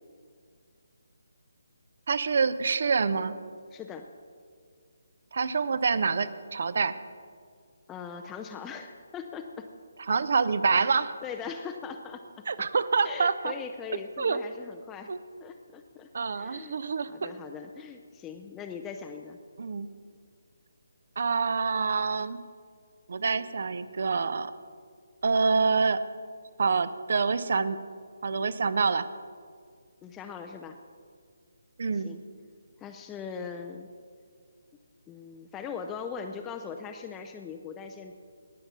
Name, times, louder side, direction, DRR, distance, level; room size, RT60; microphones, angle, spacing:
voice 1, 2.1-3.3 5.3-7.0 10.1-11.2 12.5-13.5 14.2-14.4 15.1-15.2 16.1-17.3 19.6-19.9 21.2-22.4 23.1-24.5 25.2-26.0 26.6-27.8 28.2-29.1 31.8-32.1, right 5 dB, 50° right, 15 dB, 0.6 m, -26 dB
voice 2, 3.7-4.1 7.9-9.7 11.2-12.2 13.0-15.1 15.4-16.1 16.3-16.8 17.1-19.4 30.0-30.8 31.9-32.2 32.8-33.9 35.1-38.1, left 6 dB, 10° left, 4 dB, 0.5 m, -40 dB
19.0 x 6.7 x 5.9 m, 2.1 s
figure-of-eight pair, 145°, 0 cm